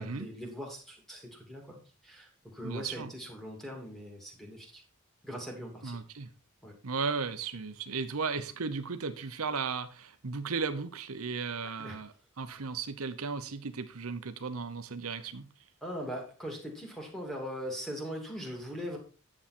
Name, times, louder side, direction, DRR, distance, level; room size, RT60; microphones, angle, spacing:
voice 1, 0.0-1.8 2.0-4.8 5.2-6.0 6.6-6.7 11.8-12.0 15.8-19.0, equal, ahead, 0 dB, 2.7 m, -40 dB
voice 2, 2.6-3.1 5.8-6.3 6.8-15.5, right 5 dB, 75° right, 9 dB, 0.8 m, -35 dB
9.9 x 7.3 x 4.3 m, 0.36 s
head